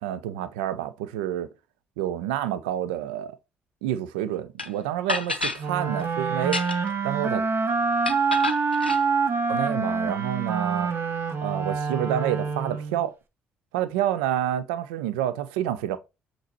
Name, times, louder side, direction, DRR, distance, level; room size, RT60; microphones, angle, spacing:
voice 1, 0.0-1.5 2.0-3.4 3.8-6.6 7.0-7.4 9.5-10.9 11.4-13.1 13.7-16.0, right 11 dB, 70° right, 0.4 m, -28 dB
sound 1, 4.6-4.7 5.1-5.6 6.4-7.0 8.0-9.0, left 3 dB, 90° left, 0.5 m, -29 dB
sound 2, 5.6-13.1, right 4 dB, 45° right, 0.9 m, -26 dB
7.8 x 3.0 x 4.3 m
figure-of-eight pair, 40°, 5 cm